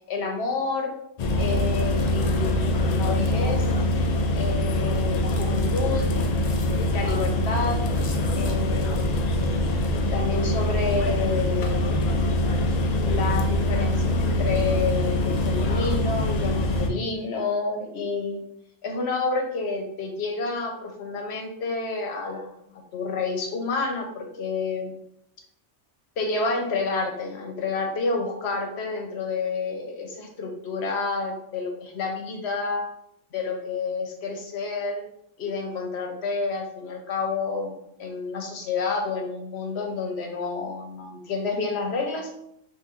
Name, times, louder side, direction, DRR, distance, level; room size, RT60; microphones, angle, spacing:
voice 1, 0.1-0.9 1.4-3.6 4.3-6.0 6.9-7.8 8.4-9.3 10.1-12.1 13.0-18.4 18.8-22.5 22.9-24.9 26.2-32.9 33.3-35.0 35.4-42.4, left 4 dB, 60° left, 2 dB, 1.0 m, -29 dB
sound 1, 1.2-16.9, left 1 dB, 90° left, 0.3 m, -24 dB
5.8 x 2.6 x 2.5 m, 0.76 s
omnidirectional pair, 1.3 m